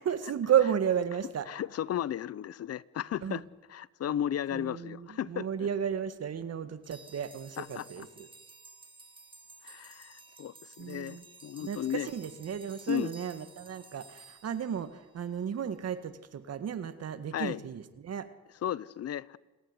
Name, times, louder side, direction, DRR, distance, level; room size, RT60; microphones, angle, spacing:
voice 1, 0.0-1.5 3.2-3.4 4.5-8.3 10.8-11.2 11.6-18.3, right 8 dB, 55° right, 1.8 m, -33 dB
voice 2, 1.5-3.4 3.7-5.5 7.6-8.1 9.6-12.1 12.9-13.1 17.3-17.6 18.6-19.4, left 10 dB, 55° left, 0.8 m, -34 dB
sound 1, 6.8-15.4, right 3 dB, 15° right, 2.0 m, -54 dB
28.5 x 18.5 x 9.8 m
cardioid pair, 90°, 30 cm